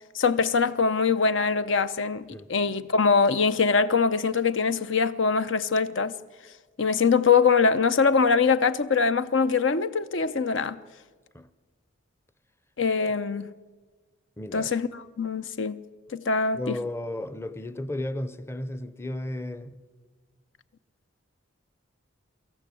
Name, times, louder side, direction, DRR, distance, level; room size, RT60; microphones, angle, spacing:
voice 1, 0.1-6.2 6.8-10.8 12.8-13.5 14.5-15.8 16.1-16.8, left 5 dB, 70° left, 0.7 m, -23 dB
voice 2, 14.4-14.7 16.5-19.8, left 1 dB, 10° left, 0.6 m, -34 dB
23.5 x 14.0 x 8.4 m
head